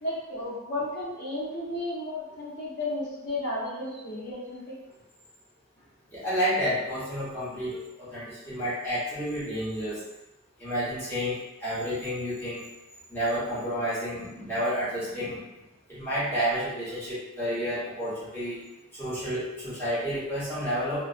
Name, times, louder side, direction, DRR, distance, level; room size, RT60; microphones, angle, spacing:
voice 1, 0.0-4.8, left 1 dB, 50° left, -6 dB, 0.8 m, -33 dB
voice 2, 6.1-10.0 10.6-11.3 11.6-12.6 13.1-15.4 15.9-18.6 19.0-21.0, equal, 10° left, -13 dB, 1.1 m, -30 dB
2.4 x 2.1 x 2.5 m, 0.98 s
head